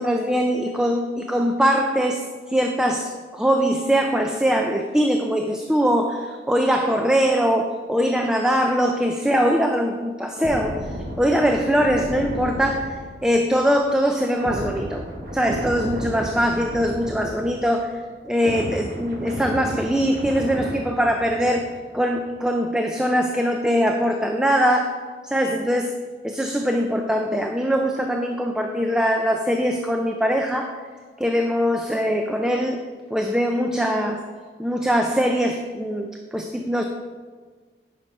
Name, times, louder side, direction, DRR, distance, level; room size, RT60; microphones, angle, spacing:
voice 1, 0.0-2.2 2.5-10.8 11.2-15.0 15.3-17.9 18.3-21.7 21.9-25.0 25.2-25.9 26.2-30.7 31.2-32.8 33.1-34.2 34.6-36.8, equal, 5° right, 3 dB, 0.4 m, -22 dB
sound 1, 10.4-17.9 18.1-21.8 22.1-22.4, equal, 55° right, 1.4 m, -33 dB
9.7 x 5.9 x 5.3 m, 1.5 s
head